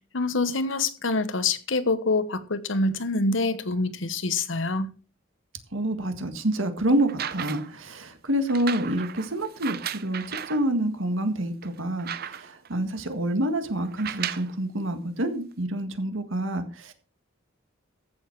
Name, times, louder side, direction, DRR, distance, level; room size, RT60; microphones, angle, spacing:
voice 1, 0.1-4.9, left 3 dB, 70° left, 1.0 m, -26 dB
voice 2, 5.7-16.9, right 1 dB, 75° right, 1.8 m, -27 dB
sound 1, 7.0-7.8 8.5-10.6 11.2-11.3 11.6-12.7 13.9-14.6 15.5-15.6, right 9 dB, 50° right, 0.7 m, -35 dB
14.5 x 7.1 x 4.6 m
head